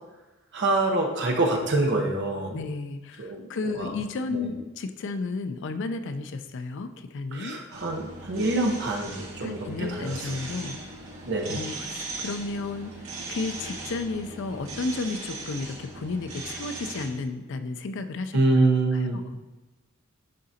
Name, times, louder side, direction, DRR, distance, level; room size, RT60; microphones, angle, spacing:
voice 1, 0.5-2.6 3.2-3.9 4.3-4.5 7.3-10.3 11.3-11.6 18.3-19.2, right 2 dB, 55° right, 1 dB, 0.9 m, -26 dB
voice 2, 2.5-7.6 9.4-10.8 11.5-12.9 13.3-18.4 18.9-19.4, left 3 dB, 60° left, 9 dB, 0.4 m, -33 dB
sound 1, 7.7-17.1, right 3 dB, 75° right, 1.7 m, -39 dB
10.5 x 3.8 x 2.8 m, 1.1 s
head